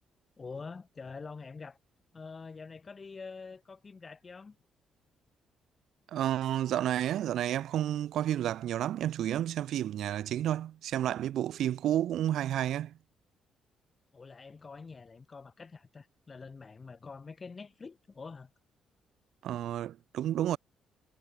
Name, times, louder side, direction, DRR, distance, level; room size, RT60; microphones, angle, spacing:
voice 1, 0.4-1.8 2.1-4.6 14.1-18.5, left 4 dB, 35° left, 1.7 m, -46 dB
voice 2, 6.1-12.9 19.4-20.6, right 11 dB, 75° right, 0.4 m, -31 dB
cardioid pair, 90°, 0 cm